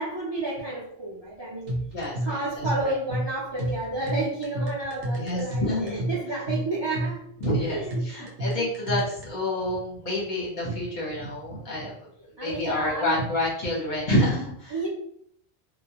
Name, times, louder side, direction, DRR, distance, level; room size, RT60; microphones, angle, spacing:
voice 1, 0.0-1.7 2.2-7.2 7.6-8.3 8.6-8.7 12.4-13.2 14.7-14.9, right 2 dB, 35° right, -6 dB, 0.4 m, -31 dB
sound 1, 1.7-9.2, right 1 dB, 65° right, 0.8 m, -30 dB
voice 2, 1.9-2.9 5.1-6.1 7.4-11.9 12.4-14.9, left 1 dB, 50° left, -4 dB, 0.8 m, -28 dB
2.2 x 2.1 x 2.8 m, 0.68 s
omnidirectional pair, 1.2 m